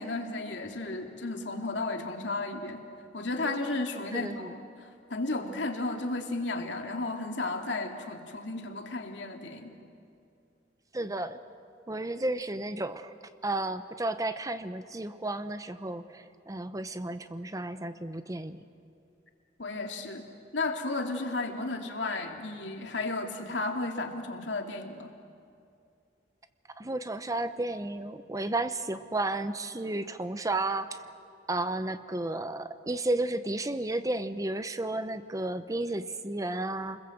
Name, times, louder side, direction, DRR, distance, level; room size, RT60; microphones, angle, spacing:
voice 1, 0.0-2.8 3.1-9.7 19.6-20.3 20.5-25.1, left 2 dB, 80° left, 3 dB, 2.5 m, -33 dB
voice 2, 4.1-4.5 10.9-11.4 11.9-13.1 13.4-18.6 26.8-31.0 31.5-37.0, right 2 dB, 20° right, 11 dB, 0.8 m, -32 dB
29.0 x 21.5 x 7.8 m, 2.5 s
head